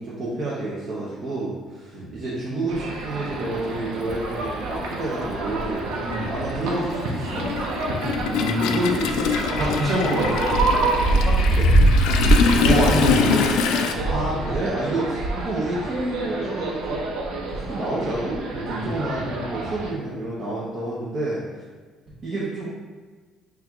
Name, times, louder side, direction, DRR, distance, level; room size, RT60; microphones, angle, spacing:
voice 1, 0.0-5.9 6.3-7.6 8.7-9.3 11.2-11.7 14.0-17.0 17.5-21.4 22.2-22.7, right 2 dB, 35° right, -8 dB, 0.7 m, -29 dB
sound 1, 2.7-19.9, right 2 dB, 85° right, 0.7 m, -25 dB
Toilet flush, 3.5-3.6 4.8-5.0 5.3-13.9, left 6 dB, 85° left, 0.3 m, -25 dB
voice 2, 6.0-6.3 8.2-8.8 9.6-10.5 12.6-13.6 18.7-19.2, equal, 15° right, -6 dB, 1.0 m, -25 dB
4.5 x 2.3 x 3.5 m, 1.4 s
cardioid pair, 175°, 0 cm